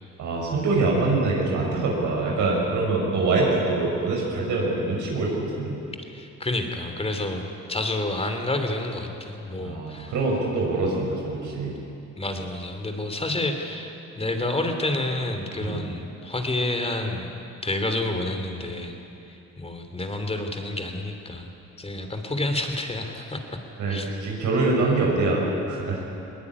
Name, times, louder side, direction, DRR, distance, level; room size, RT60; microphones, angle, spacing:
voice 1, 0.2-5.8 9.6-11.7 15.6-15.8 23.8-23.9 24.2-26.0, right 3 dB, 80° right, -2 dB, 5.7 m, -24 dB
voice 2, 6.1-10.1 12.2-17.3 17.6-19.0 19.3-21.5 21.8-23.6 23.9-24.1, left 2 dB, 20° left, 5 dB, 3.2 m, -29 dB
21.0 x 19.5 x 9.8 m, 2.9 s
cardioid pair, 90°, 30 cm